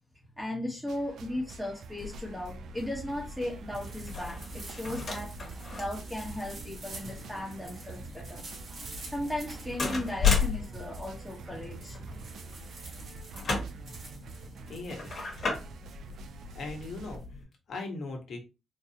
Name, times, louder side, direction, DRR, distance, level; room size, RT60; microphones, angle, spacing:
voice 1, 0.4-5.3 5.7-8.4 9.1-12.3 14.4-14.6, left 1 dB, 5° right, 1.3 m, -36 dB
sound 1, 0.9-17.2, right 3 dB, 75° right, 0.4 m, -47 dB
sound 2, 2.0-17.4, left 6 dB, 50° left, 1.7 m, -36 dB
sound 3, 3.1-17.3, right 3 dB, 50° right, 2.1 m, -49 dB
voice 2, 14.7-15.2 16.5-18.4, left 3 dB, 65° left, 1.4 m, -39 dB
4.2 x 2.7 x 2.9 m
cardioid pair, 100°, 0 cm